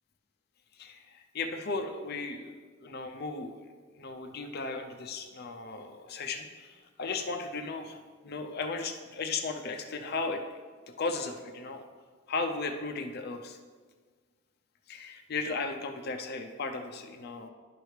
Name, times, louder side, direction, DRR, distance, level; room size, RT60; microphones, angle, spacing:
voice 1, 0.8-2.5 2.8-3.7 4.0-10.4 11.0-11.8 12.3-13.6 14.9-17.5, left 3 dB, 50° left, 5 dB, 0.6 m, -36 dB
11.5 x 4.8 x 3.3 m, 1.5 s
head